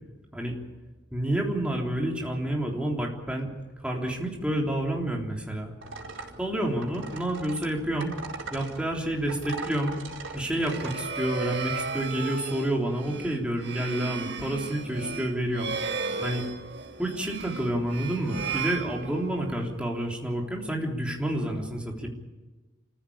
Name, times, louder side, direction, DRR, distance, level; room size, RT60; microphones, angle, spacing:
voice 1, 1.1-3.5 3.8-5.7 6.4-8.1 8.5-10.0 10.3-15.7 16.2-16.5 17.0-22.1, right 1 dB, 5° right, 0 dB, 3.6 m, -29 dB
sound 1, 5.8-11.0, right 3 dB, 90° right, 4.4 m, -40 dB
sound 2, 10.5-19.6, right 4 dB, 60° right, 1.8 m, -35 dB
28.0 x 15.0 x 8.7 m, 1.2 s
head